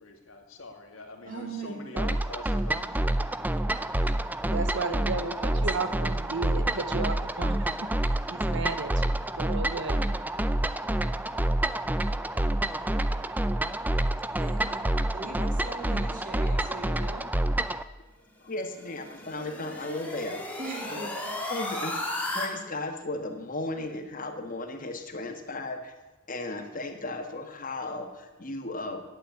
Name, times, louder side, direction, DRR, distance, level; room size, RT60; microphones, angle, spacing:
voice 1, 0.0-4.3, left 2 dB, 70° left, 3 dB, 2.2 m, -46 dB
voice 2, 1.2-2.1 2.6-3.1 5.4-6.3 14.4-17.3 20.6-21.4, right 2 dB, 40° right, 1 dB, 2.9 m, -41 dB
sound 1, 2.0-17.8, right 1 dB, 10° right, 0.4 m, -28 dB
voice 3, 4.4-8.0 8.3-10.0, right 4 dB, 55° right, 11 dB, 0.8 m, -34 dB
voice 4, 18.4-20.4 20.9-21.0 21.5-22.1 22.3-25.9 26.3-29.0, left 2 dB, 40° left, 6 dB, 1.4 m, -35 dB
sound 2, 18.5-22.5, left 1 dB, 5° left, 1.9 m, -35 dB
11.0 x 9.0 x 9.3 m, 1.2 s
head